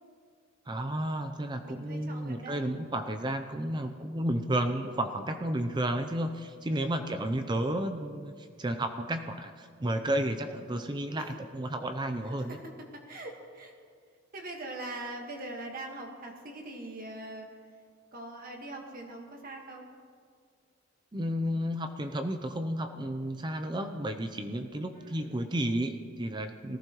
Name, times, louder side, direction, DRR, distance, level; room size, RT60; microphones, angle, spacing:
voice 1, 0.7-12.6 21.1-26.8, right 1 dB, 20° right, 7 dB, 0.6 m, -32 dB
voice 2, 1.6-2.7 6.7-7.6 11.2-11.3 12.3-13.7 14.3-17.5 18.1-19.9 24.9-25.4, right 2 dB, 45° right, 1 dB, 1.6 m, -43 dB
19.5 x 14.5 x 3.1 m, 2.1 s
head